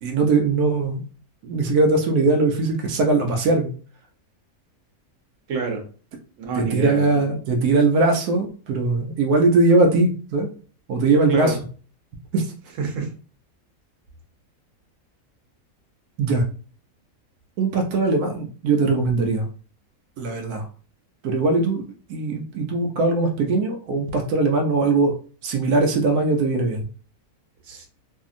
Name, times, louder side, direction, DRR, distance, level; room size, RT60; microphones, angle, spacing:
voice 1, 0.0-1.0 1.4-3.7 6.6-10.5 10.9-11.6 12.3-12.5 16.2-16.4 17.6-19.4 20.2-20.7 21.2-21.8 22.1-25.1 25.4-26.9, right 3 dB, 85° right, 3 dB, 1.1 m, -20 dB
voice 2, 5.5-5.8 6.4-7.1 11.3-11.6 12.8-13.1 27.6-27.9, right 5 dB, 60° right, 2 dB, 1.1 m, -27 dB
2.8 x 2.6 x 2.5 m, 0.39 s
omnidirectional pair, 1.6 m